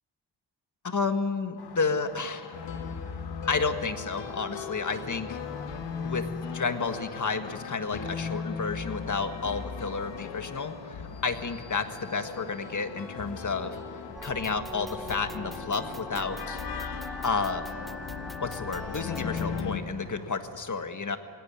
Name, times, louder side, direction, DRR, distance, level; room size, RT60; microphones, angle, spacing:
voice 1, 0.8-2.6 3.5-5.4 6.0-13.8 14.2-16.6 17.2-17.6 18.4-21.2, left 4 dB, 45° left, 8 dB, 1.7 m, -31 dB
sound 1, 1.6-20.4, left 7 dB, 65° left, 1.0 m, -47 dB
sound 2, 2.5-19.8, left 6 dB, 85° left, 1.9 m, -38 dB
sound 3, 14.1-19.6, equal, ahead, 0.5 m, -41 dB
20.0 x 18.0 x 9.9 m, 2.7 s
wide cardioid pair, 95°, 43 cm